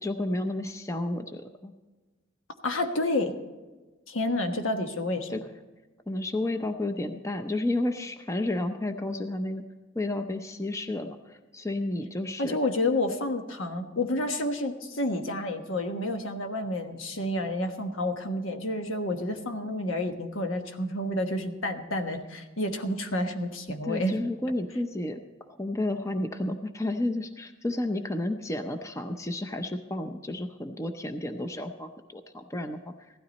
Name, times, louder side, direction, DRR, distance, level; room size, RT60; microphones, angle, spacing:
voice 1, 0.0-1.7 5.3-5.4 6.1-9.6 9.9-12.6 23.8-25.2 25.6-32.9, left 1 dB, 15° left, 7 dB, 0.6 m, -31 dB
voice 2, 2.6-3.3 4.1-5.4 12.4-24.1, left 1 dB, 75° left, 6 dB, 1.3 m, -29 dB
16.0 x 12.5 x 4.1 m, 1.2 s
head